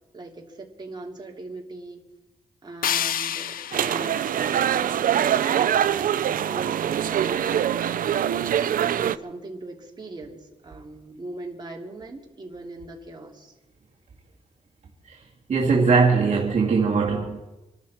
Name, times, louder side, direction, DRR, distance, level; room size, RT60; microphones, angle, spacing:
voice 1, 0.1-2.0 2.6-13.5, right 2 dB, 30° right, 3.0 m, -40 dB
sound 1, 2.8-5.8, left 9 dB, 90° left, 0.6 m, -31 dB
sound 2, 3.7-9.2, right 10 dB, 75° right, 0.5 m, -23 dB
voice 2, 15.5-17.6, right 4 dB, 55° right, 2.1 m, -20 dB
26.5 x 12.0 x 4.4 m
wide cardioid pair, 135°, 14 cm